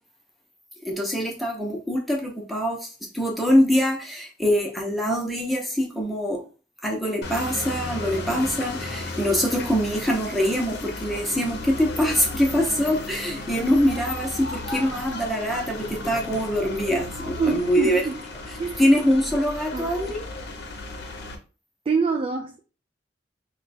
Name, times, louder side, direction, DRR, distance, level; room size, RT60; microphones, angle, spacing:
voice 1, 0.8-6.4 6.8-18.0 18.8-20.2, equal, ahead, 0.8 m, -24 dB
sound 1, 7.2-21.4, left 2 dB, 60° left, 0.7 m, -34 dB
voice 2, 17.4-18.2 18.6-18.9 19.7-20.2 21.9-22.6, right 5 dB, 30° right, 0.3 m, -26 dB
3.1 x 2.3 x 4.1 m
head